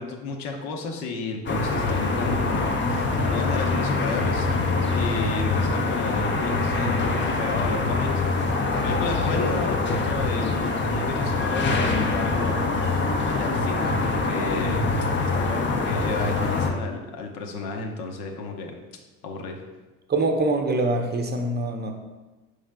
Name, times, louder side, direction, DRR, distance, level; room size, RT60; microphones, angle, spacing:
voice 1, 0.0-4.5 4.9-18.7 19.2-19.6, left 4 dB, 65° left, 2 dB, 0.9 m, -32 dB
sound 1, 1.5-16.7, left 3 dB, 25° left, 0.6 m, -24 dB
voice 2, 20.1-21.9, right 2 dB, 25° right, 4 dB, 0.7 m, -24 dB
5.0 x 4.7 x 2.2 m, 1.2 s
hypercardioid pair, 75°, 42 cm